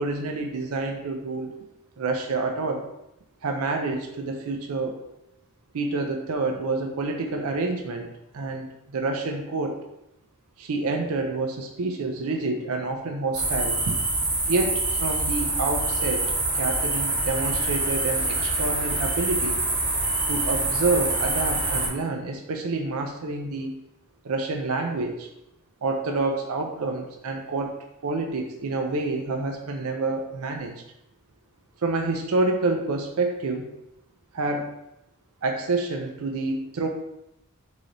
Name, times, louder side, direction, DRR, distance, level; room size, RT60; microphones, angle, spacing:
voice 1, 0.0-1.5 2.0-2.8 3.4-5.0 5.7-8.1 8.3-9.8 10.6-14.0 14.5-16.2 16.5-19.6 20.3-23.8 24.2-25.3 25.8-27.7 28.0-30.7 31.8-33.7 34.3-34.7 35.4-36.9, right 3 dB, 90° right, 4 dB, 0.5 m, -28 dB
sound 1, 13.3-21.9, right 2 dB, 25° right, 1.1 m, -25 dB
3.8 x 3.3 x 3.8 m, 0.86 s
head